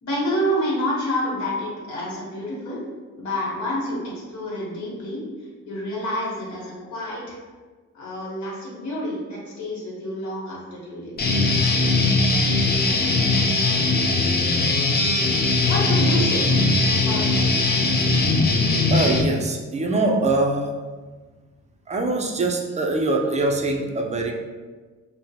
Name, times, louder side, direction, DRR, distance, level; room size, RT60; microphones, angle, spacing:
voice 1, 0.0-2.8 3.1-4.0 4.3-5.2 5.7-7.4 7.9-11.1 15.7-16.5 17.0-17.6, equal, 65° left, -5 dB, 1.2 m, -28 dB
Guitar, 11.2-19.2, left 3 dB, 35° left, 0.5 m, -20 dB
voice 2, 18.9-20.8 21.9-24.3, right 2 dB, 25° right, 2 dB, 0.4 m, -23 dB
3.6 x 2.1 x 2.7 m, 1.4 s
cardioid pair, 90°, 30 cm